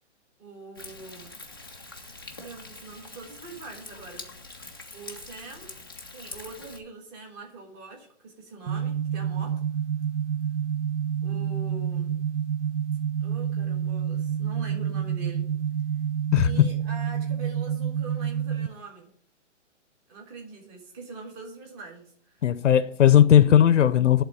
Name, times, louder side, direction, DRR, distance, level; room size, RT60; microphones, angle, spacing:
voice 1, 0.4-1.4 2.3-4.2 4.9-5.7 6.1-9.5 11.2-12.2 13.2-15.4 16.3-19.1 20.1-22.5, right 3 dB, 20° right, 1.5 m, -43 dB
Thunder, 0.8-6.8, left 2 dB, 20° left, 0.4 m, -44 dB
sound 1, 8.7-18.7, right 8 dB, 70° right, 0.6 m, -28 dB
voice 2, 16.3-16.7 22.4-24.2, left 10 dB, 75° left, 0.7 m, -17 dB
11.0 x 3.8 x 6.9 m
hypercardioid pair, 170°, 37 cm